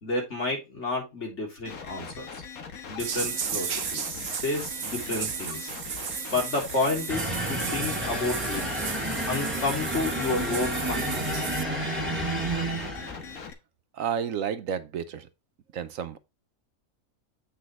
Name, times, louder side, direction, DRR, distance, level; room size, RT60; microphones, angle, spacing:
voice 1, 0.0-2.4 2.9-5.7 6.3-8.7 9.3-11.6, left 3 dB, 55° left, 3.8 m, -31 dB
sound 1, 1.7-13.5, left 5 dB, 80° left, 1.7 m, -41 dB
sound 2, 3.0-11.6, right 7 dB, 55° right, 0.9 m, -34 dB
sound 3, 7.1-13.4, right 1 dB, 10° right, 3.5 m, -31 dB
voice 2, 14.0-15.2 15.7-16.2, right 8 dB, 70° right, 1.1 m, -31 dB
8.4 x 6.2 x 3.1 m
omnidirectional pair, 1.5 m